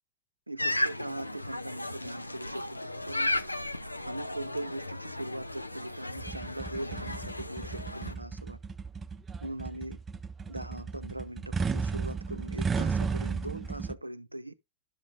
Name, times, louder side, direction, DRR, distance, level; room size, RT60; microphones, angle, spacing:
voice 1, 0.5-3.4 4.1-8.6 9.4-10.0 10.5-14.5, right 1 dB, 85° right, 0.4 m, -40 dB
sound 1, 0.6-8.1, left 1 dB, 85° left, 0.5 m, -35 dB
sound 2, 6.2-13.9, right 5 dB, 20° right, 0.5 m, -34 dB
11.5 x 6.1 x 2.5 m
figure-of-eight pair, 90°, 0 cm